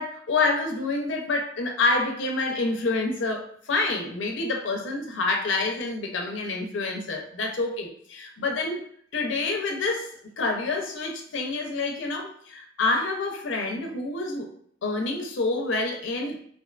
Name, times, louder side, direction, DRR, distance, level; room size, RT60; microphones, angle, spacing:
voice 1, 0.0-8.8 9.1-10.1 10.4-14.5 14.8-16.4, left 3 dB, 85° left, 2 dB, 0.5 m, -27 dB
2.5 x 2.2 x 2.4 m, 0.62 s
head